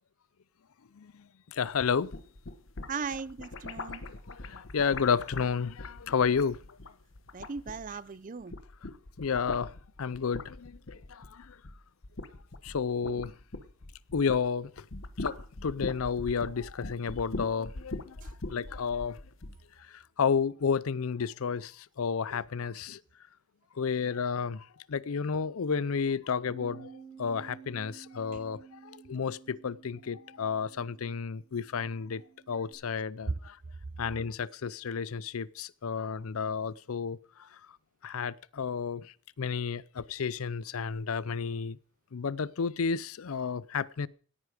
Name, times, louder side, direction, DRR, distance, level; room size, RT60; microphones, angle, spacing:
voice 1, 1.5-2.1 4.3-6.6 9.2-9.7 10.0-11.6 12.6-13.3 14.1-14.7 15.2-18.2 18.5-19.2 19.9-23.0 23.8-26.9 27.2-32.2 32.5-33.6 34.0-37.2 38.0-41.8 42.1-44.1, left 6 dB, 80° left, 0.5 m, -31 dB
sound 1, 1.9-8.1 8.4-14.5 14.8-19.6, left 2 dB, 60° left, 1.1 m, -41 dB
voice 2, 2.9-4.0 7.3-8.5 13.1-13.2, right 5 dB, 40° right, 0.5 m, -38 dB
Bass guitar, 26.5-32.7, right 6 dB, 15° left, 5.9 m, -52 dB
17.5 x 9.7 x 5.0 m
head